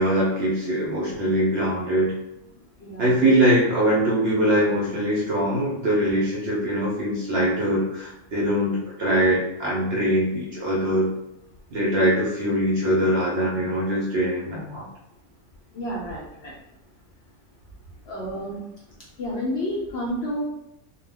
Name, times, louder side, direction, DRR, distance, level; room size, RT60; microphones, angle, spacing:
voice 1, 0.0-2.1 3.0-11.1 11.7-14.8, right 1 dB, 60° right, -5 dB, 0.7 m, -22 dB
voice 2, 2.8-3.2 15.7-16.5 18.1-18.6 19.2-20.4, equal, 60° left, -5 dB, 0.7 m, -30 dB
2.3 x 2.2 x 3.3 m, 0.86 s
omnidirectional pair, 1.5 m